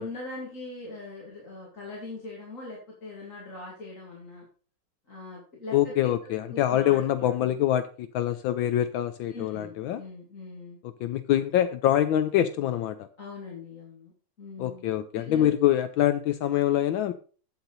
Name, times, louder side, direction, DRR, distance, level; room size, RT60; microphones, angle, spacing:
voice 1, 0.0-4.5 5.1-5.9 6.5-7.6 9.3-10.8 13.2-14.1 14.4-14.9 15.2-15.5, left 3 dB, 40° left, -4 dB, 2.8 m, -41 dB
voice 2, 5.7-10.0 11.0-13.0 14.6-17.1, left 12 dB, 75° left, 11 dB, 1.3 m, -25 dB
8.7 x 7.9 x 4.1 m, 0.39 s
omnidirectional pair, 2.3 m